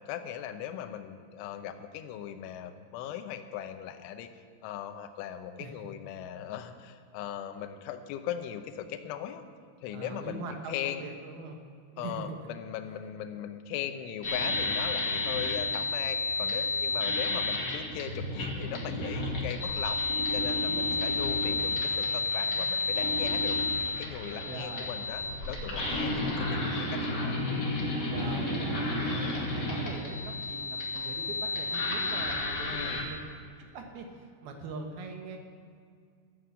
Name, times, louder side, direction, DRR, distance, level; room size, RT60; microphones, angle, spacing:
voice 1, 0.1-4.3 4.6-9.4 9.8-11.1 12.0-20.0 20.3-23.6 24.0-27.4 32.6-33.1, left 10 dB, 80° left, 7 dB, 3.2 m, -39 dB
voice 2, 5.6-5.9 9.9-11.6 11.9-12.3 17.2-17.4 20.7-21.1 24.4-25.0 28.1-33.2 33.7-35.4, right 3 dB, 70° right, 3 dB, 2.6 m, -42 dB
sound 1, 14.2-33.0, left 2 dB, 40° left, 1.5 m, -31 dB
13.0 x 9.4 x 8.2 m, 2.2 s
omnidirectional pair, 5.7 m